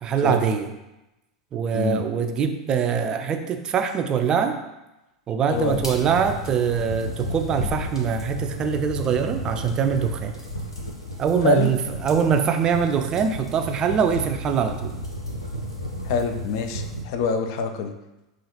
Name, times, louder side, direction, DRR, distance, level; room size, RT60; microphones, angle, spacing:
voice 1, 0.0-0.7 1.5-4.6 5.3-10.3 11.2-14.9, right 7 dB, 30° right, 6 dB, 0.3 m, -23 dB
voice 2, 1.7-2.0 5.5-5.8 11.4-11.7 16.1-17.9, left 5 dB, 50° left, 7 dB, 0.4 m, -25 dB
sound 1, 5.5-17.0, equal, 90° left, 0.7 m, -33 dB
5.4 x 2.5 x 2.8 m, 0.97 s
figure-of-eight pair, 85°, 3 cm